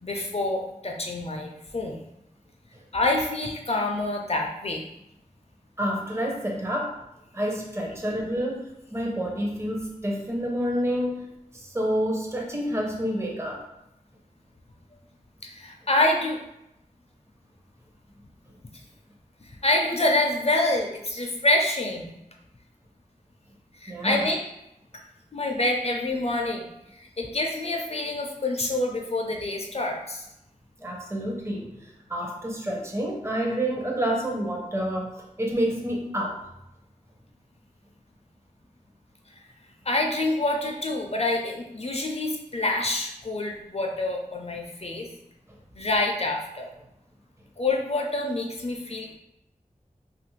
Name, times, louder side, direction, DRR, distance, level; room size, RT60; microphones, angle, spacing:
voice 1, 0.0-2.0 2.9-4.8 15.4-16.4 19.4-22.1 23.8-24.4 25.3-30.3 39.8-45.1 45.8-46.7 47.6-49.1, left 2 dB, 45° left, 1 dB, 0.4 m, -27 dB
voice 2, 5.8-7.0 7.3-11.3 11.5-13.6 23.9-24.3 30.8-31.8 32.1-36.4, equal, 20° right, 0 dB, 0.6 m, -28 dB
2.7 x 2.4 x 3.1 m, 0.85 s
wide cardioid pair, 45°, 14 cm